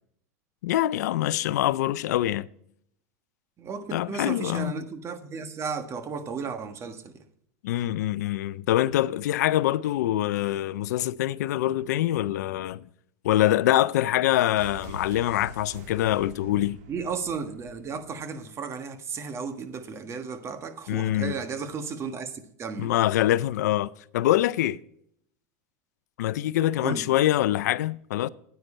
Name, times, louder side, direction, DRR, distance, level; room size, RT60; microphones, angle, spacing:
voice 1, 0.6-2.5 3.9-4.7 7.6-12.8 13.2-16.8 20.9-21.3 22.8-24.8 26.2-28.3, left 14 dB, 80° left, 0.4 m, -24 dB
voice 2, 3.6-7.2 16.9-22.9 26.8-27.1, right 5 dB, 30° right, 1.4 m, -34 dB
sound 1, 14.6-18.3 18.6-18.7, right 4 dB, 70° right, 2.3 m, -45 dB
9.6 x 9.3 x 4.3 m
supercardioid pair, 110°, 9 cm